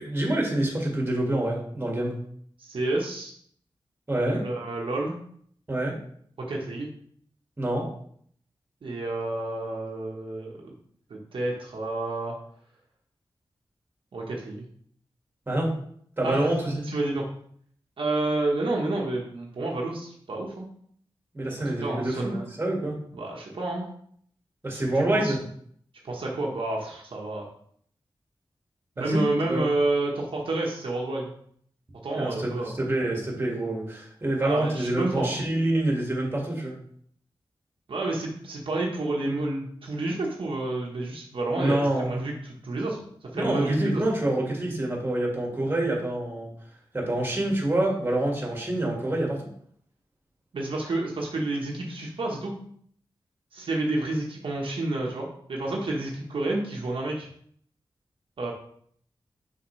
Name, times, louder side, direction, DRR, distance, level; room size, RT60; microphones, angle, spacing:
voice 1, 0.0-2.2 4.1-4.4 5.7-6.0 7.6-7.9 15.5-15.7 16.2-16.9 21.3-22.9 24.6-25.4 29.0-29.7 32.1-36.8 41.5-42.2 43.3-46.5 46.9-49.4, right 1 dB, 25° right, -1 dB, 1.8 m, -27 dB
voice 2, 2.6-3.3 4.2-5.2 6.4-6.9 8.8-10.7 11.1-12.4 14.1-14.6 16.2-16.5 16.9-17.2 18.0-20.7 21.6-22.4 23.1-23.9 24.7-25.3 26.0-27.4 29.0-31.3 32.0-32.7 34.4-35.4 37.9-44.0 50.5-52.5 53.5-57.3 58.4-58.5, right 2 dB, 75° right, -2 dB, 1.2 m, -29 dB
6.1 x 5.1 x 3.2 m, 0.63 s
wide cardioid pair, 105°, 9 cm